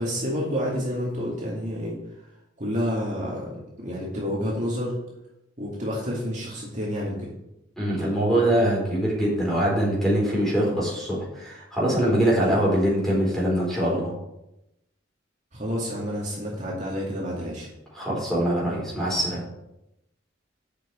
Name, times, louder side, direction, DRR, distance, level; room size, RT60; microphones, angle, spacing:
voice 1, 0.0-2.3 2.6-5.0 5.6-7.3 15.5-17.7, equal, 40° right, -4 dB, 2.3 m, -29 dB
voice 2, 7.8-14.1 17.9-19.4, right 1 dB, ahead, -5 dB, 4.2 m, -23 dB
8.3 x 6.2 x 7.2 m, 0.87 s
head